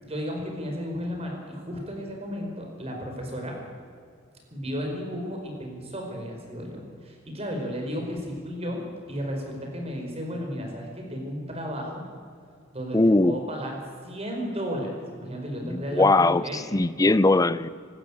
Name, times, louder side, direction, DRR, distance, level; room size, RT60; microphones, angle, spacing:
voice 1, 0.0-3.6 4.5-8.8 9.1-12.0 12.7-16.6, equal, 30° right, 1 dB, 4.8 m, -33 dB
voice 2, 12.9-13.4 15.6-17.7, left 2 dB, 15° left, 17 dB, 0.5 m, -21 dB
26.0 x 13.0 x 8.6 m, 2.2 s
head